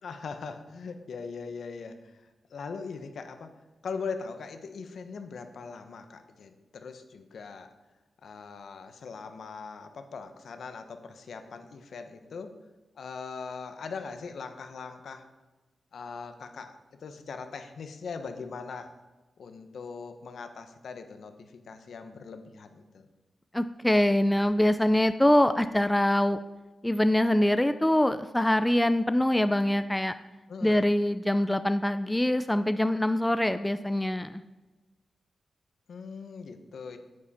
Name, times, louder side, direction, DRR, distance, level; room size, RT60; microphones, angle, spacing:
voice 1, 0.0-2.2 2.5-3.5 3.8-7.7 8.2-12.6 13.0-15.3 15.9-19.0 19.4-23.0 30.5-30.8 35.9-37.0, left 5 dB, 70° left, 7 dB, 1.1 m, -40 dB
voice 2, 23.5-26.4 26.8-30.1 30.6-34.4, left 1 dB, 5° left, 11 dB, 0.3 m, -24 dB
9.9 x 9.9 x 4.3 m, 1.2 s
wide cardioid pair, 150°, 0 cm